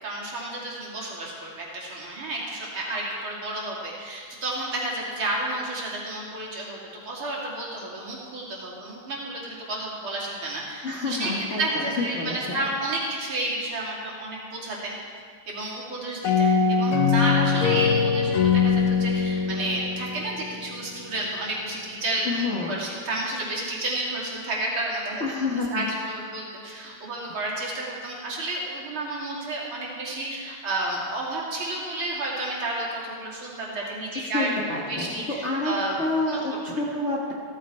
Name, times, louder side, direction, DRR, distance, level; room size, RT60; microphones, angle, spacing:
voice 1, 0.0-15.0 15.5-25.3 25.7-34.5 34.9-35.9 36.3-36.6, right 2 dB, 65° right, -4 dB, 3.5 m, -31 dB
voice 2, 10.8-11.6 12.0-12.6 22.2-22.8 25.2-25.8 34.1-35.1 35.4-35.7 36.0-37.3, left 3 dB, 40° left, -2 dB, 1.3 m, -28 dB
sound 1, 16.2-20.9, left 6 dB, 75° left, 2.0 m, -22 dB
15.5 x 14.0 x 4.3 m, 2.1 s
omnidirectional pair, 2.4 m